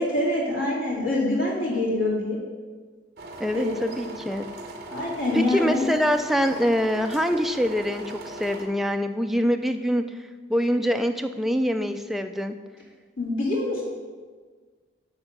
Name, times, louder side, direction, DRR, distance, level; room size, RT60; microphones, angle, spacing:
voice 1, 0.0-2.4 3.5-3.7 4.9-5.8 13.2-13.8, left 2 dB, 85° left, -5 dB, 2.3 m, -25 dB
sound 1, 3.2-8.7, right 1 dB, 50° right, 1.2 m, -39 dB
voice 2, 3.4-4.5 5.3-10.0 10.5-12.5, equal, ahead, 6 dB, 0.3 m, -24 dB
9.9 x 3.6 x 6.5 m, 1.5 s
head